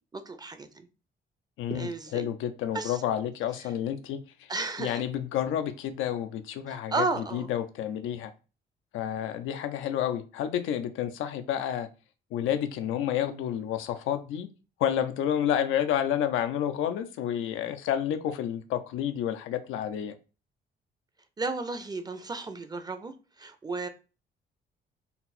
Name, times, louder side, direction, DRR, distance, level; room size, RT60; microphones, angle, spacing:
voice 1, 0.1-0.9 1.7-2.3 2.7-3.0 3.6-3.7 4.5-5.0 6.7-7.5 21.4-23.9, right 3 dB, 20° right, 0.5 m, -33 dB
voice 2, 1.6-4.2 4.8-7.0 7.3-8.3 8.9-11.9 12.3-14.5 14.8-20.1, left 10 dB, 90° left, 0.5 m, -30 dB
4.1 x 2.0 x 4.1 m
cardioid pair, 90°, 20 cm